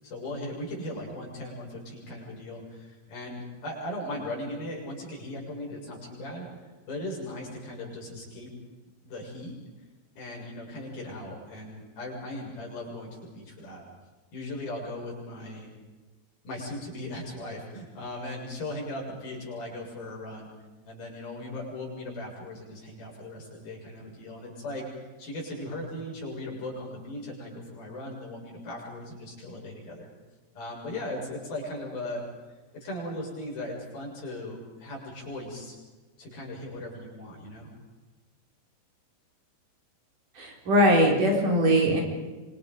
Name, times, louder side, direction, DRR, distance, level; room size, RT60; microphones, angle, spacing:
voice 1, 0.0-8.5 9.0-9.5 10.2-13.8 14.3-15.7 16.4-20.5 20.8-30.1 30.5-32.2 32.7-35.8 36.2-37.7, left 1 dB, 60° left, -2 dB, 8.9 m, -38 dB
voice 2, 40.4-42.0, equal, 50° right, 0 dB, 5.2 m, -21 dB
27.0 x 26.0 x 5.5 m, 1.2 s
omnidirectional pair, 4.9 m